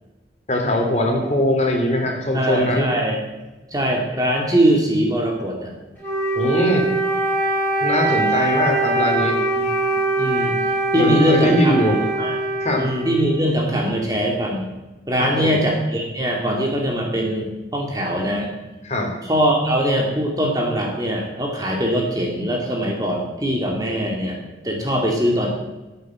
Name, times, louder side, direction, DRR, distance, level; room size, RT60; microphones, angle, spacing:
voice 1, 0.5-2.9 6.4-6.9 7.8-9.4 10.9-12.1 12.6-12.9 15.2-15.6 18.8-19.1, left 1 dB, 40° left, 2 dB, 2.9 m, -21 dB
voice 2, 2.3-3.2 3.7-5.8 9.6-9.7 10.2-10.5 10.9-12.4 12.8-14.7 15.1-18.5 19.2-25.5, equal, 20° right, 0 dB, 2.3 m, -22 dB
Wind instrument woodwind instrument, 6.0-13.6, right 2 dB, 10° left, 6.4 m, -22 dB
14.0 x 8.7 x 7.5 m, 1.1 s
head